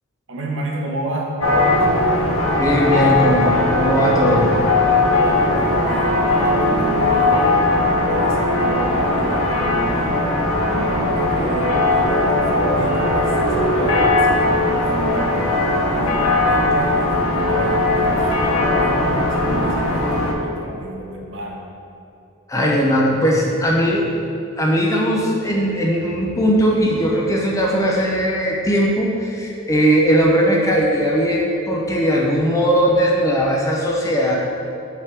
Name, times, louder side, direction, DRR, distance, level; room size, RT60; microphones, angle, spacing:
voice 1, 0.3-2.1 5.2-7.8 8.1-10.1 10.7-15.4 15.9-21.6, right 1 dB, 60° right, -1 dB, 0.9 m, -30 dB
sound 1, 1.4-20.3, left 2 dB, 75° left, 0.8 m, -18 dB
voice 2, 2.6-4.6 22.5-24.0 24.6-34.4, equal, 15° left, -2 dB, 0.5 m, -18 dB
5.7 x 3.6 x 5.9 m, 2.9 s
head